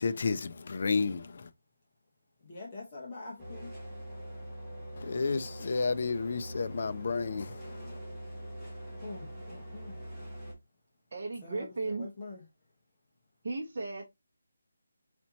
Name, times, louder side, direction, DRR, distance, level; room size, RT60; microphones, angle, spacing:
voice 1, 0.0-1.3 5.0-7.5 7.8-7.9, left 4 dB, 35° left, 0.4 m, -31 dB
voice 2, 2.4-3.7 9.0-9.9 11.4-12.4, left 3 dB, 20° left, 1.1 m, -44 dB
sound 1, 3.4-10.5, right 1 dB, ahead, 1.3 m, -43 dB
voice 3, 11.1-12.1 13.4-14.0, right 3 dB, 35° right, 1.0 m, -35 dB
4.3 x 4.2 x 2.8 m
hypercardioid pair, 180°, 0 cm